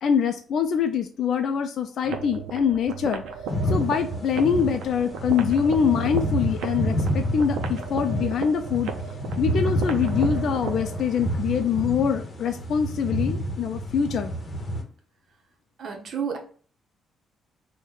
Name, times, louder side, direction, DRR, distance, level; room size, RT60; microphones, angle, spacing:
voice 1, 0.0-3.2 3.7-8.9 9.4-14.3, left 7 dB, 65° left, 6 dB, 0.3 m, -24 dB
sound 1, 2.0-11.1, right 6 dB, 85° right, 0.4 m, -36 dB
sound 2, 3.5-14.8, equal, 40° left, 0.9 m, -29 dB
voice 2, 15.8-16.4, right 7 dB, 55° right, 2 dB, 0.7 m, -30 dB
3.0 x 2.1 x 3.7 m, 0.43 s
cardioid pair, 90°, 0 cm